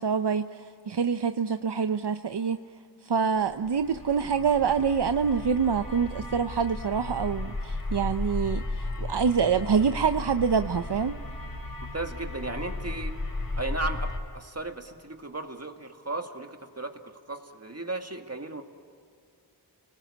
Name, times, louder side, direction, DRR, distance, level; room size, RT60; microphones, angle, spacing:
voice 1, 0.0-2.6 3.0-11.2, right 6 dB, 75° right, 8 dB, 0.7 m, -26 dB
sound 1, 3.5-14.2, left 2 dB, 55° left, 3.1 m, -35 dB
voice 2, 11.9-13.2 13.6-18.6, right 2 dB, 35° right, 5 dB, 2.1 m, -35 dB
30.0 x 19.5 x 9.9 m, 2.4 s
wide cardioid pair, 55°, 41 cm